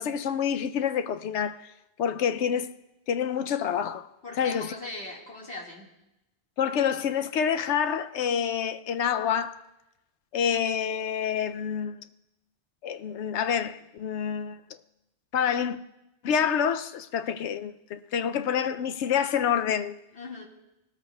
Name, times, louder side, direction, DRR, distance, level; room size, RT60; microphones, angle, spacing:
voice 1, 0.0-1.7 2.0-2.7 3.1-4.1 4.4-4.7 6.6-9.6 10.3-12.0 12.8-14.6 15.3-15.8 16.2-20.0, left 8 dB, 90° left, 0.9 m, -27 dB
voice 2, 4.2-5.9 20.1-20.5, left 2 dB, 70° left, 2.3 m, -39 dB
19.0 x 13.0 x 2.3 m
omnidirectional pair, 1.1 m